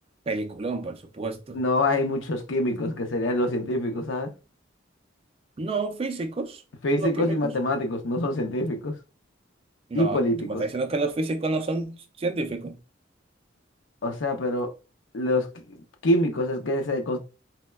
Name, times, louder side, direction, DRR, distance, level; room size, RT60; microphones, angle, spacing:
voice 1, 0.3-1.6 5.6-6.6 7.0-7.4 9.9-12.8, right 3 dB, 30° right, 0.4 m, -29 dB
voice 2, 1.5-4.3 6.8-9.0 9.9-10.6 14.0-14.7 15.1-17.2, left 1 dB, 70° left, 0.6 m, -25 dB
4.1 x 2.1 x 2.2 m
head